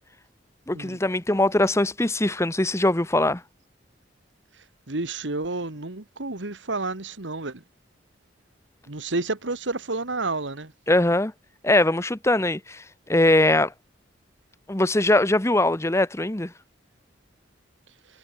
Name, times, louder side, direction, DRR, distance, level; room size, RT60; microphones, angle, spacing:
voice 1, 0.7-3.4 10.9-11.3 11.6-13.7 14.7-16.5, left 1 dB, 15° left, 1.1 m, -21 dB
voice 2, 4.9-7.6 8.9-10.7, right 3 dB, 85° right, 2.0 m, -30 dB
head